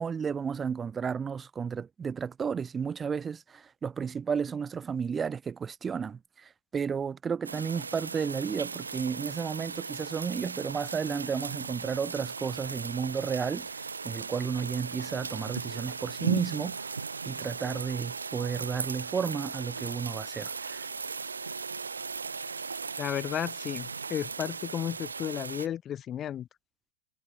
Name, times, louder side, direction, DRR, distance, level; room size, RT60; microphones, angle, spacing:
voice 1, 0.0-16.8 17.2-20.9, right 6 dB, 20° right, 0.7 m, -33 dB
sound 1, 7.4-25.7, right 5 dB, 75° right, 0.7 m, -37 dB
voice 2, 23.0-26.5, left 10 dB, 25° left, 0.7 m, -33 dB
figure-of-eight pair, 90°, 0 cm